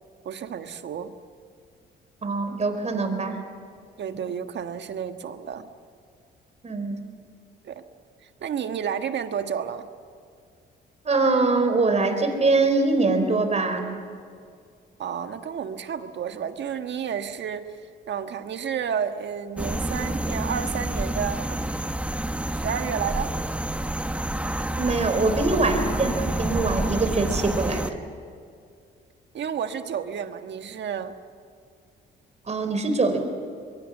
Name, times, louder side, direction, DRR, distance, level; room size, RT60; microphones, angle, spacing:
voice 1, 0.2-1.1 3.3-3.4 4.0-5.7 7.6-7.8 8.2-9.9 15.0-17.7 18.1-22.1 22.5-23.3 29.3-31.2, right 8 dB, 65° right, 8 dB, 1.5 m, -31 dB
voice 2, 2.2-3.4 6.6-7.0 11.0-14.0 24.7-27.9 32.5-33.2, right 3 dB, 35° right, 6 dB, 4.3 m, -23 dB
sound 1, 19.6-27.9, right 1 dB, 5° right, 1.2 m, -28 dB
23.5 x 22.5 x 7.4 m, 2.3 s
cardioid pair, 90°, 20 cm